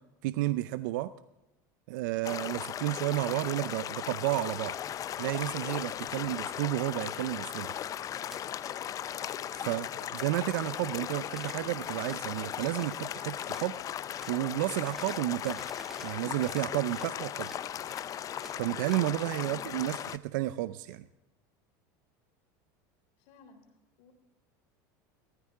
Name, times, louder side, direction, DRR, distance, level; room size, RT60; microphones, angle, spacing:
voice 1, 0.2-1.1 1.9-4.7 5.2-7.7 9.5-9.9 10.1-13.8 14.3-15.7 16.0-17.5 18.6-21.0, right 16 dB, 80° right, 14 dB, 0.5 m, -31 dB
sound 1, 2.2-20.2, left 10 dB, 35° left, 0.5 m, -37 dB
sound 2, 8.2-8.4 8.9-9.6 9.9-10.3 11.3-11.6 12.0-12.3 12.7-12.9 13.4-13.7 14.1-14.4 14.8-17.1 17.4-19.1, right 1 dB, 5° right, 1.0 m, -50 dB
voice 2, 19.4-19.7 23.2-24.1, left 4 dB, 65° left, 4 dB, 3.7 m, -57 dB
16.5 x 14.0 x 3.7 m, 1.0 s
supercardioid pair, 120°, 10 cm